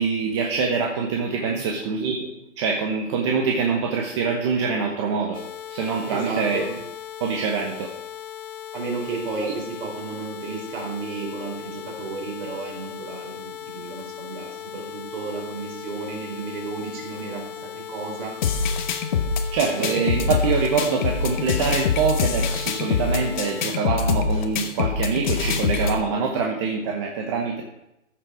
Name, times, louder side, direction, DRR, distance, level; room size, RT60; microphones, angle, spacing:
voice 1, 0.0-5.4 5.7-6.6 7.2-7.9 9.4-9.5 19.5-27.6, right 5 dB, 25° right, 0 dB, 0.9 m, -25 dB
voice 2, 1.3-1.7 6.1-6.7 8.7-18.3 19.6-20.4, right 4 dB, 45° right, 0 dB, 4.2 m, -33 dB
sound 1, 5.3-23.6, left 11 dB, 70° left, 1.4 m, -38 dB
sound 2, 18.4-26.0, left 5 dB, 35° left, 1.1 m, -24 dB
14.5 x 6.6 x 4.7 m, 0.85 s
hypercardioid pair, 155°, 38 cm